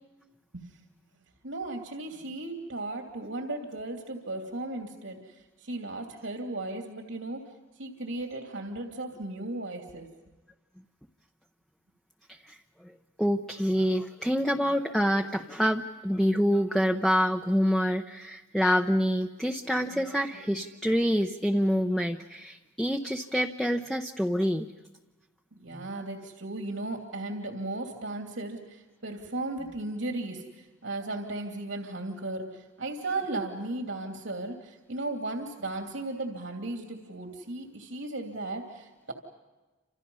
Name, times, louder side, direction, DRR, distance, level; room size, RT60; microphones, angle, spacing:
voice 1, 1.4-7.4 7.8-10.1 25.6-39.1, right 2 dB, 80° right, 3 dB, 2.9 m, -36 dB
voice 2, 13.2-24.7 25.7-25.8, equal, 5° left, 3 dB, 0.7 m, -26 dB
30.0 x 27.5 x 5.6 m, 1.2 s
head